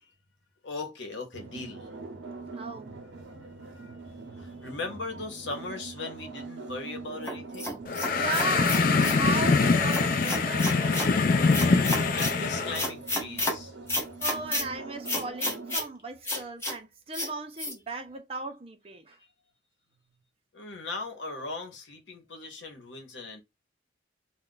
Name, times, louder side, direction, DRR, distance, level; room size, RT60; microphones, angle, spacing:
voice 1, 0.6-1.9 3.6-4.0 4.4-7.8 12.1-13.7 20.5-23.4, left 3 dB, 75° left, 1.0 m, -39 dB
sound 1, 1.3-15.8, right 3 dB, 85° right, 0.7 m, -43 dB
voice 2, 2.5-2.9 8.1-11.2 13.4-13.5 14.2-19.2, right 3 dB, 30° right, 0.5 m, -36 dB
sound 2, 7.3-9.2 9.9-11.1 11.5-12.4 12.7-13.6 13.9-14.6 15.1-15.9 16.2-16.7 17.1-17.3 17.6-17.7, left 1 dB, 15° left, 1.0 m, -31 dB
sound 3, 7.9-12.9, left 4 dB, 50° left, 0.4 m, -24 dB
2.4 x 2.2 x 3.7 m
head